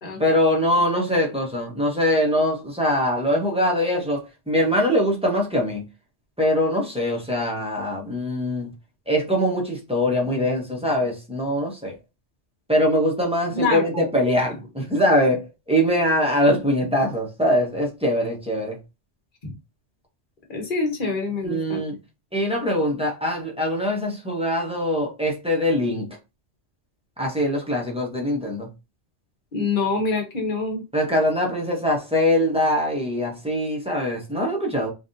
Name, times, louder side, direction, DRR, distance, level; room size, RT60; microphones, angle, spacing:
voice 1, 0.2-5.9 6.4-8.7 9.1-11.9 12.7-18.8 21.4-21.9 22.3-26.2 27.2-28.7 30.9-34.9, equal, 5° right, 0.8 m, -22 dB
voice 2, 13.6-14.1 19.4-19.5 20.5-21.8 29.5-30.8, left 3 dB, 50° left, 1.2 m, -25 dB
3.4 x 2.5 x 2.6 m
omnidirectional pair, 1.2 m